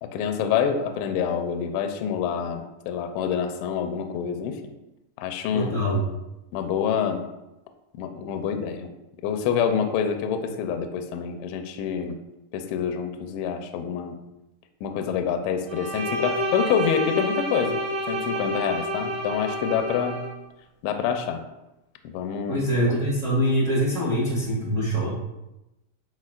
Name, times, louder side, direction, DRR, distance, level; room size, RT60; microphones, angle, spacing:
voice 1, 0.0-4.6 5.2-5.8 6.5-7.2 8.0-8.9 9.2-12.2 12.5-14.2 14.8-17.8 18.1-20.3 20.8-21.4 22.1-22.7, left 7 dB, 85° left, 6 dB, 2.6 m, -27 dB
voice 2, 5.5-6.1 22.5-25.2, equal, 75° right, -6 dB, 0.6 m, -24 dB
Bowed string instrument, 15.7-20.3, equal, 60° right, 1.6 m, -29 dB
10.5 x 4.4 x 2.4 m, 0.95 s
omnidirectional pair, 5.7 m